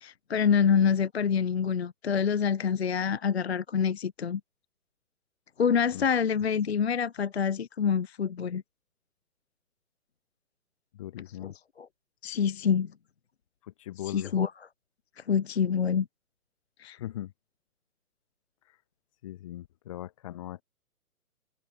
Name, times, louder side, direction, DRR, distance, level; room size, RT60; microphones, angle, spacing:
voice 1, 0.0-4.4 5.6-8.6 11.4-11.9 12.2-12.9 14.1-14.5 15.3-16.1 16.8-17.0, left 7 dB, 45° left, 0.4 m, -26 dB
voice 2, 10.9-11.5 13.6-14.3 17.0-17.3 18.7-18.8 19.2-20.6, left 13 dB, 20° left, 1.6 m, -39 dB
hypercardioid pair, 165°, 44 cm